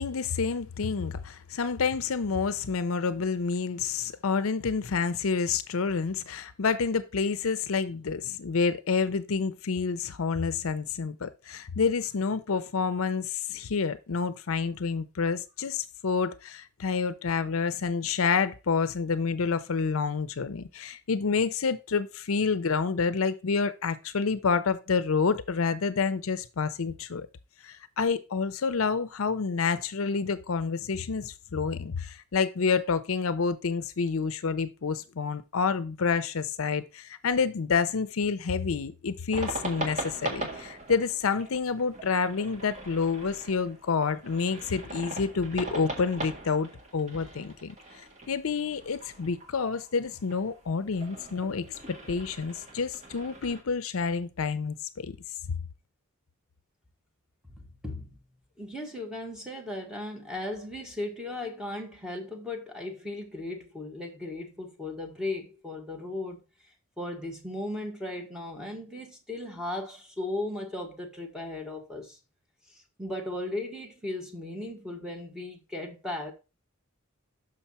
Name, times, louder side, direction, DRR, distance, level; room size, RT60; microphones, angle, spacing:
voice 1, 0.0-27.3 27.6-47.8 48.3-55.2, left 5 dB, 70° left, 0.6 m, -28 dB
sound 1, 39.3-53.6, right 2 dB, 35° right, 1.6 m, -40 dB
voice 2, 57.5-58.1 58.6-66.4 67.0-72.2 72.7-76.3, left 2 dB, 5° right, 1.5 m, -36 dB
6.4 x 5.7 x 4.2 m
head